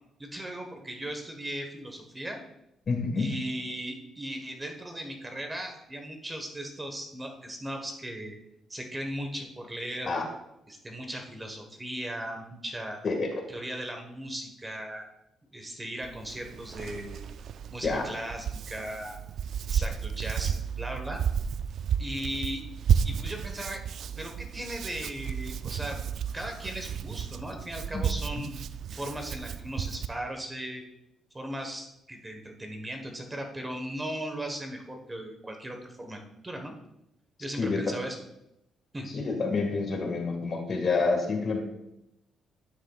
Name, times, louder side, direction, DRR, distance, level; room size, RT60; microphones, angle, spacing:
voice 1, 0.2-2.4 3.1-8.4 8.7-10.1 10.7-13.0 13.5-15.0 15.5-17.3 17.7-19.2 19.7-21.2 22.0-22.6 23.0-23.8 24.2-26.0 26.3-28.5 28.9-30.8 31.3-36.7 37.4-38.2 38.9-39.1, right 1 dB, 20° right, 3 dB, 1.3 m, -37 dB
voice 2, 2.9-3.3 10.1-10.2 13.0-13.4 17.8-18.1 27.9-28.0 37.6-37.9 39.1-41.6, left 4 dB, 50° left, 3 dB, 1.8 m, -28 dB
Hands, 16.0-30.1, right 8 dB, 65° right, 0.4 m, -32 dB
11.5 x 6.4 x 2.4 m, 0.83 s
cardioid pair, 90°, 0 cm